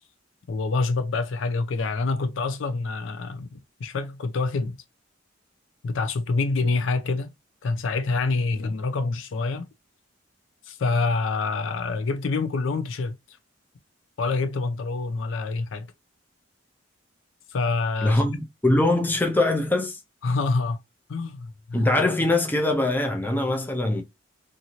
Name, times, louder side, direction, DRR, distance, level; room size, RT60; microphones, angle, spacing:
voice 1, 0.5-4.8 5.8-7.3 7.6-9.7 10.7-13.4 14.2-15.9 17.5-18.2 20.2-20.8 21.1-21.9, left 3 dB, 65° left, 0.4 m, -26 dB
voice 2, 18.0-20.0 21.7-24.0, left 2 dB, 10° left, 0.5 m, -22 dB
2.7 x 2.5 x 2.8 m
head